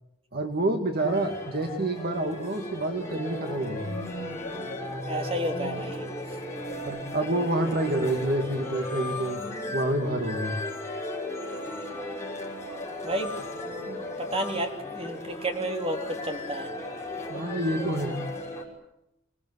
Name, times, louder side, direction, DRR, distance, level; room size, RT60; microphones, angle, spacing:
voice 1, 0.3-4.0 6.8-9.4 9.7-10.6 17.3-18.2, right 1 dB, 50° right, 4 dB, 2.2 m, -28 dB
sound 1, 1.0-18.6, left 1 dB, 15° left, 6.0 m, -36 dB
voice 2, 5.1-6.4 13.0-13.4 13.9-16.7, right 1 dB, 30° right, 3 dB, 3.5 m, -32 dB
26.5 x 20.5 x 9.7 m, 0.85 s
head